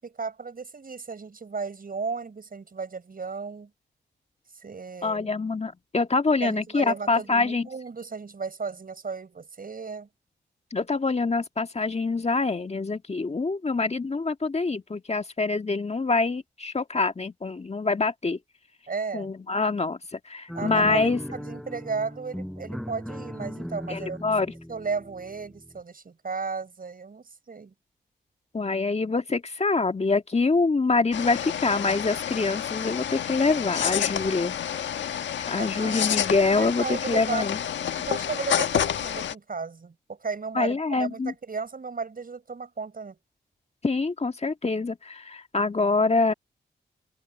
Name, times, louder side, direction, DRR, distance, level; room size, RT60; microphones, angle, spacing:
voice 1, 0.0-3.7 4.5-5.3 6.4-10.1 18.9-19.3 20.5-24.3 24.7-27.7 35.5-36.1 36.5-37.5 38.0-43.2, right 4 dB, 50° right, 6.8 m, -34 dB
voice 2, 5.0-7.7 10.7-18.4 19.1-21.2 23.9-24.5 28.5-34.6 35.5-37.6 40.6-41.3 43.8-46.3, left 3 dB, 35° left, 1.7 m, -25 dB
sound 1, 20.5-25.8, equal, ahead, 0.8 m, -37 dB
sound 2, 31.1-39.3, left 9 dB, 75° left, 1.5 m, -29 dB
supercardioid pair, 40°, 19 cm